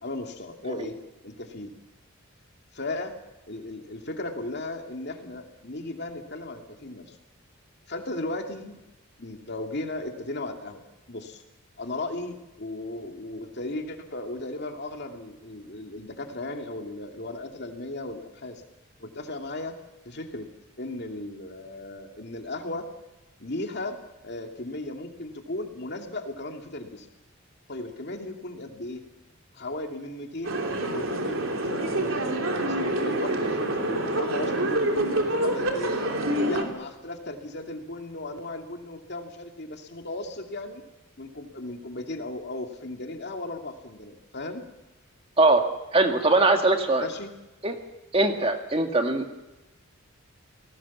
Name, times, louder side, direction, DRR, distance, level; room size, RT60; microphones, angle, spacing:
voice 1, 0.0-1.0 1.2-1.7 2.7-3.2 3.5-7.2 7.9-8.8 9.2-10.8 11.1-11.4 11.8-18.6 19.0-19.7 20.0-20.5 20.8-22.9 23.4-24.0 24.2-27.1 27.7-29.0 29.5-31.4 31.6-35.9 36.4-40.9 41.2-44.6 46.9-47.3, left 2 dB, 50° left, 3 dB, 2.6 m, -36 dB
sound 1, 30.4-36.6, right 1 dB, 65° right, 3.3 m, -27 dB
voice 2, 45.9-47.1 47.6-47.7 48.1-49.3, right 2 dB, 25° right, 5 dB, 1.9 m, -21 dB
29.5 x 19.0 x 7.3 m, 1.0 s
head